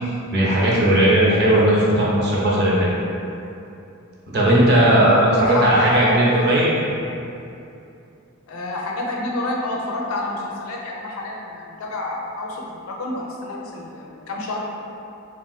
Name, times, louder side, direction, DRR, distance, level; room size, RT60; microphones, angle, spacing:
voice 1, 0.3-2.9 4.3-7.0, right 1 dB, 50° right, -5 dB, 0.6 m, -17 dB
voice 2, 5.3-6.3 8.5-14.6, left 2 dB, 75° left, -2 dB, 0.4 m, -28 dB
3.5 x 2.2 x 2.3 m, 2.7 s
head